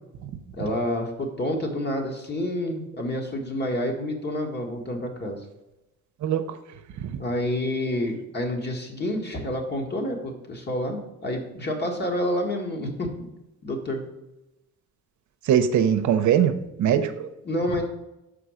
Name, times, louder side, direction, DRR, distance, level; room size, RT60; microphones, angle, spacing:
voice 1, 0.6-5.4 7.2-13.3 13.6-14.0 17.4-17.8, left 1 dB, 35° left, 2 dB, 1.7 m, -28 dB
voice 2, 6.2-6.6 7.0-7.2 15.4-16.5 16.8-17.3, right 9 dB, 70° right, 9 dB, 0.7 m, -22 dB
6.0 x 4.9 x 5.0 m, 0.94 s
cardioid pair, 90°, 30 cm